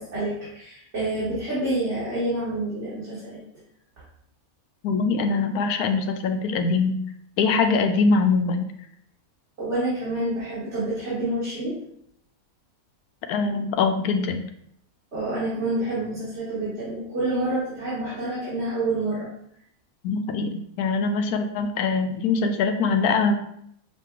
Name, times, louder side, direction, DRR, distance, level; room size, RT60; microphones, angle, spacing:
voice 1, 0.0-3.4 9.6-11.8 15.1-19.3, right 2 dB, 50° right, -11 dB, 2.0 m, -28 dB
voice 2, 4.8-7.0 7.4-8.7 13.3-14.4 20.0-23.3, left 4 dB, 90° left, 6 dB, 1.1 m, -23 dB
6.4 x 2.2 x 3.6 m, 0.70 s
omnidirectional pair, 1.5 m